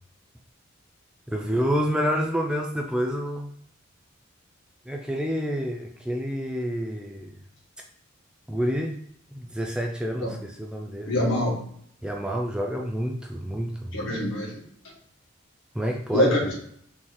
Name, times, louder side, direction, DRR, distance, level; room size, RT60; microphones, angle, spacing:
voice 1, 1.3-3.5 4.9-7.4 8.5-9.0 9.3-11.1 12.0-14.0 15.7-16.5, equal, 5° right, 1 dB, 0.4 m, -28 dB
voice 2, 11.1-11.6 13.9-14.5 16.1-16.5, left 1 dB, 75° left, -4 dB, 1.8 m, -24 dB
4.2 x 3.2 x 3.7 m, 0.66 s
head